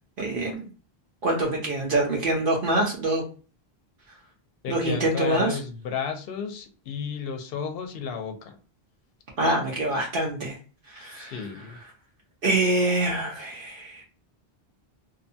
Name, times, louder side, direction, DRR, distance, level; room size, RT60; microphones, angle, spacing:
voice 1, 0.2-0.7 1.2-3.2 4.7-5.6 9.4-10.6 10.9-11.5 12.4-14.0, right 2 dB, 65° right, -2 dB, 0.8 m, -25 dB
voice 2, 4.6-8.6 11.2-11.8, left 6 dB, 70° left, 6 dB, 0.8 m, -33 dB
2.7 x 2.2 x 2.6 m, 0.37 s
omnidirectional pair, 1.0 m